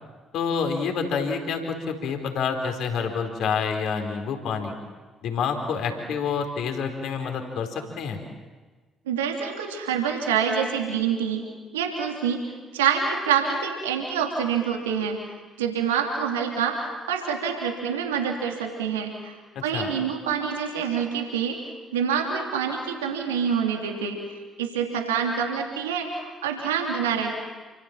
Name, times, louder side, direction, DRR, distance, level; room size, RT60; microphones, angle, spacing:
voice 1, 0.3-4.7 5.2-8.2 19.5-19.9, left 6 dB, 60° left, 5 dB, 4.5 m, -28 dB
voice 2, 9.1-11.4 11.7-12.5 12.7-15.2 15.6-19.3 19.6-21.6 21.9-24.2 24.6-27.3, right 7 dB, 75° right, 2 dB, 3.1 m, -26 dB
29.5 x 25.0 x 7.6 m, 1.3 s
figure-of-eight pair, 45°, 0 cm